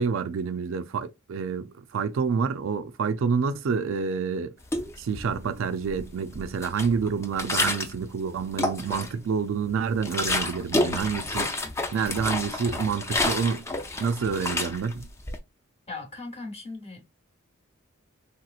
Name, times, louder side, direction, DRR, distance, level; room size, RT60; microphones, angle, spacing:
voice 1, 0.0-4.6 5.0-11.5 11.9-13.7 14.0-15.1, right 5 dB, 70° right, 0.4 m, -28 dB
sound 1, 4.6-5.5 5.8-8.0 8.4-9.3 9.7-15.4, left 2 dB, 15° left, 0.4 m, -29 dB
voice 2, 15.9-17.1, left 3 dB, 30° left, 1.0 m, -38 dB
3.4 x 2.9 x 2.4 m
head